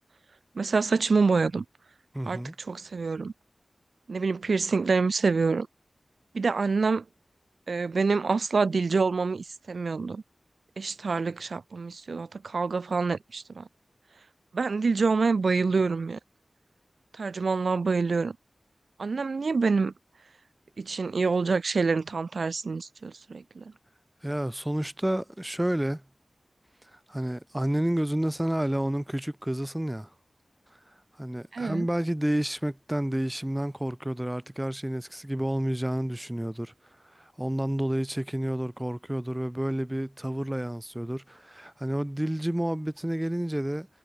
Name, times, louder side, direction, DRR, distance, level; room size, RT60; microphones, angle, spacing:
voice 1, 0.6-1.6 2.3-2.4 2.7-3.3 4.1-5.7 6.3-7.0 7.7-10.2 10.8-13.6 14.5-16.2 17.2-18.3 19.0-19.9 20.8-23.6 31.5-31.9, right 4 dB, 75° right, 0.4 m, -26 dB
voice 2, 2.1-2.6 24.2-26.0 26.9-30.1 31.2-36.7 37.2-43.9, right 1 dB, 15° right, 0.4 m, -30 dB
cardioid pair, 40°, 0 cm